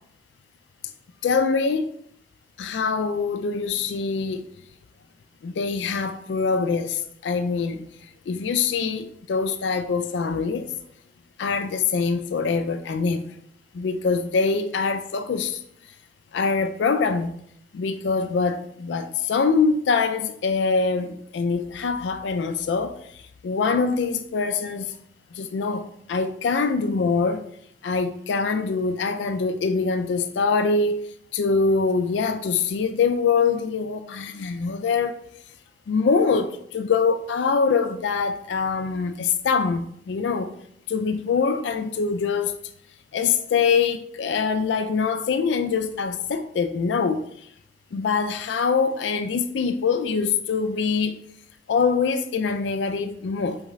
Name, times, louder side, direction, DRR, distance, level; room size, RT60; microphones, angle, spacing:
voice 1, 1.2-1.9 2.6-4.5 5.4-7.8 8.3-10.7 11.4-13.3 13.7-15.6 16.3-17.3 17.7-22.9 23.4-24.9 25.4-25.8 26.1-27.4 27.8-31.0 31.3-35.2 35.9-40.5 40.9-42.5 43.1-47.2 47.9-51.1 51.7-53.6, left 5 dB, 85° left, 0.4 m, -24 dB
4.7 x 3.6 x 3.1 m
head